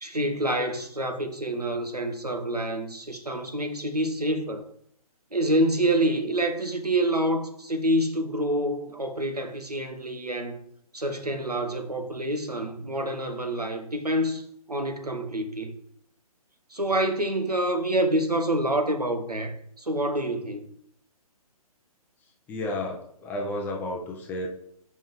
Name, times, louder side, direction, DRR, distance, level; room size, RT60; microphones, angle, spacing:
voice 1, 0.0-4.7 5.3-10.6 10.9-15.7 16.7-20.7, right 1 dB, 85° right, 1.0 m, -27 dB
voice 2, 22.5-24.5, left 1 dB, 10° left, 0.6 m, -32 dB
7.0 x 5.4 x 3.1 m
figure-of-eight pair, 130°, 19 cm